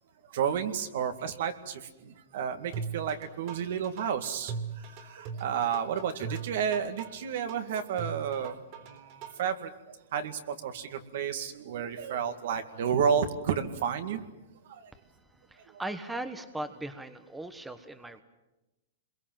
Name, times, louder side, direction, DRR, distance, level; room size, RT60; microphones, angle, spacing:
voice 1, 0.3-8.6 8.8-9.7 10.1-14.3 14.7-14.9 15.7-15.8, right 7 dB, 65° right, 8 dB, 2.2 m, -31 dB
sound 1, 2.7-9.5, right 5 dB, 45° right, 3.7 m, -39 dB
voice 2, 15.5-18.2, right 2 dB, 5° right, 9 dB, 1.2 m, -38 dB
27.0 x 22.5 x 7.7 m, 1.0 s
hypercardioid pair, 145°, 0 cm